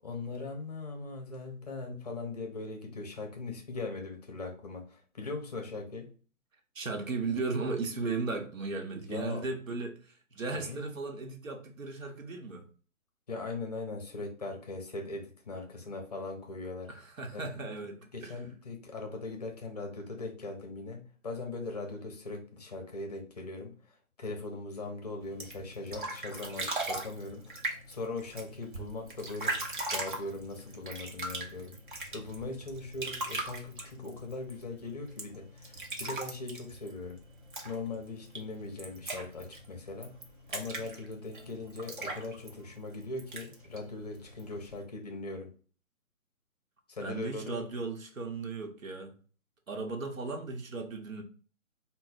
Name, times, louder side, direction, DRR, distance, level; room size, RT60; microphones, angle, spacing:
voice 1, 0.0-6.1 9.1-9.5 10.6-10.8 13.3-16.9 17.3-17.7 18.1-27.5 27.9-29.6 29.9-31.8 32.1-37.2 37.6-40.2 40.5-45.5 46.9-47.7, left 3 dB, 30° left, 0.6 m, -40 dB
voice 2, 6.7-12.7 16.9-18.4 47.0-49.2 49.7-51.2, right 3 dB, 70° right, 1.0 m, -36 dB
sound 1, 25.2-44.8, right 2 dB, 35° right, 0.7 m, -40 dB
3.9 x 2.2 x 4.0 m
figure-of-eight pair, 145°, 42 cm